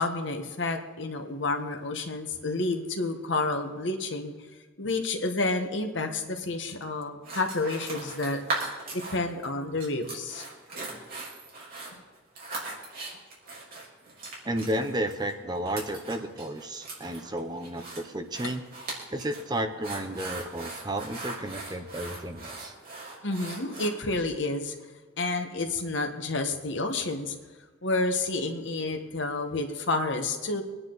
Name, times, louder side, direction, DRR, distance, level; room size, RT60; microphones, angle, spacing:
voice 1, 0.0-4.3 4.8-8.4 8.9-10.5 23.2-24.7 25.2-27.3 27.8-30.6, left 2 dB, 60° left, 5 dB, 1.4 m, -30 dB
sound 1, 7.2-9.4 9.8-23.9, right 3 dB, 45° right, 3.7 m, -39 dB
voice 2, 14.4-18.6 19.1-22.7, right 1 dB, 20° right, 7 dB, 0.8 m, -32 dB
23.5 x 9.6 x 4.0 m, 1.3 s
head